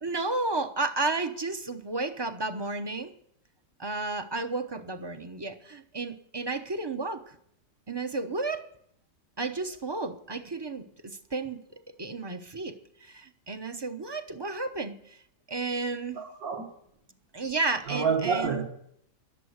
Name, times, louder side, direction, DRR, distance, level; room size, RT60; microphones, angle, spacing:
voice 1, 0.0-3.1 3.8-7.2 7.9-8.6 9.4-11.6 12.0-15.2 15.5-16.2 17.3-18.6, right 3 dB, 20° right, 8 dB, 0.7 m, -32 dB
voice 2, 16.2-16.7 17.9-18.6, right 5 dB, 60° right, 0 dB, 2.1 m, -28 dB
20.5 x 7.5 x 8.0 m, 0.71 s
omnidirectional pair, 1.8 m